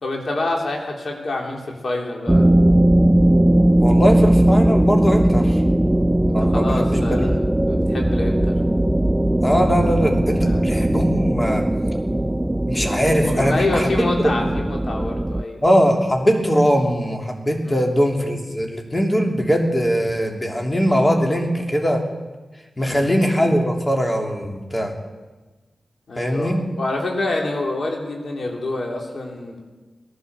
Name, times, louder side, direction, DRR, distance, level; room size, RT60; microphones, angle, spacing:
voice 1, 0.0-2.5 6.4-7.4 7.7-8.5 10.4-10.6 13.3-15.6 17.6-17.8 22.8-23.1 26.1-29.6, left 2 dB, 70° left, 1 dB, 3.3 m, -27 dB
sound 1, 2.3-15.4, right 1 dB, 15° right, 0.5 m, -18 dB
voice 2, 3.8-5.6 6.3-7.3 9.4-11.6 12.7-14.5 15.6-22.0 22.8-24.9 26.1-26.6, equal, 25° left, 1 dB, 3.2 m, -20 dB
18.0 x 11.5 x 6.9 m, 1.3 s
cardioid pair, 50°, 0 cm